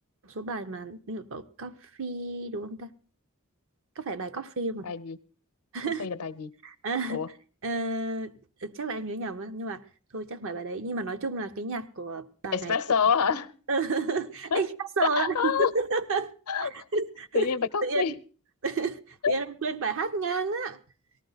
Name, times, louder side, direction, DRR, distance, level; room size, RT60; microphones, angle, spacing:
voice 1, 0.2-2.9 4.0-4.9 5.7-6.1 6.6-7.2 7.6-8.4 8.6-9.8 10.1-12.8 13.7-16.3 16.6-17.5 17.8-18.1 18.6-20.8, right 3 dB, 65° right, 0.8 m, -31 dB
voice 2, 4.8-5.2 6.0-6.5 7.1-7.3 12.5-13.5 14.5-14.6 15.2-15.7 16.5-16.7 17.3-18.1 19.2-19.3, left 6 dB, 80° left, 0.7 m, -27 dB
18.0 x 14.0 x 4.0 m
head